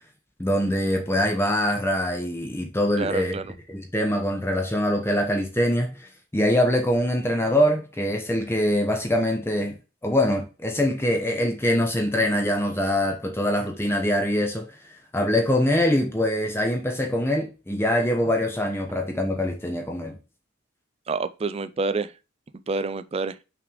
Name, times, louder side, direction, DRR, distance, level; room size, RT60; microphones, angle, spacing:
voice 1, 0.4-3.4 3.7-9.7 10.0-14.7 15.1-20.2, left 1 dB, 10° left, 0.7 m, -23 dB
voice 2, 3.0-3.5 21.1-22.1 22.7-23.4, right 3 dB, 30° right, 0.4 m, -28 dB
5.8 x 3.3 x 5.3 m
head